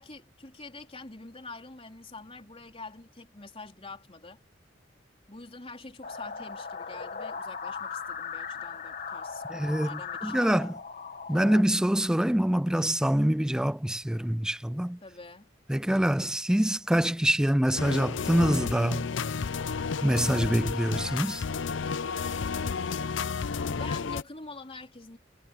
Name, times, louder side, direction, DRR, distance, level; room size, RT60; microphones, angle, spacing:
voice 1, 0.0-4.4 5.3-10.8 15.0-15.5 23.7-25.2, left 3 dB, 30° left, 3.8 m, -45 dB
sound 1, 6.0-11.6, left 5 dB, 50° left, 1.8 m, -38 dB
voice 2, 9.5-10.7 11.3-15.0 15.7-19.1 20.0-21.4, right 1 dB, 5° right, 0.3 m, -25 dB
sound 2, 17.8-24.2, left 5 dB, 80° left, 0.6 m, -32 dB
head